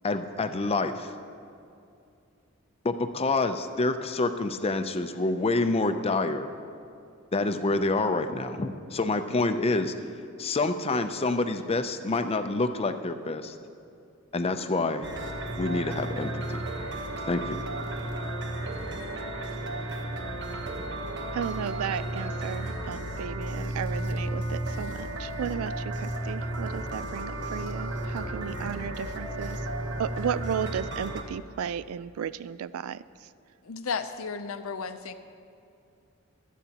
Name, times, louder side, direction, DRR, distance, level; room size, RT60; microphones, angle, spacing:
voice 1, 0.0-1.1 2.8-6.5 7.3-9.9 10.4-13.6 14.3-15.1 15.5-16.6 17.3-17.6, left 3 dB, 30° left, 9 dB, 0.5 m, -27 dB
sound 1, 15.0-31.2, right 1 dB, 55° right, 1.1 m, -33 dB
voice 2, 21.3-29.6 30.0-33.0, right 8 dB, 80° right, 17 dB, 0.3 m, -34 dB
voice 3, 33.7-35.1, left 5 dB, 75° left, 9 dB, 0.6 m, -33 dB
24.5 x 8.2 x 2.9 m, 2.5 s
head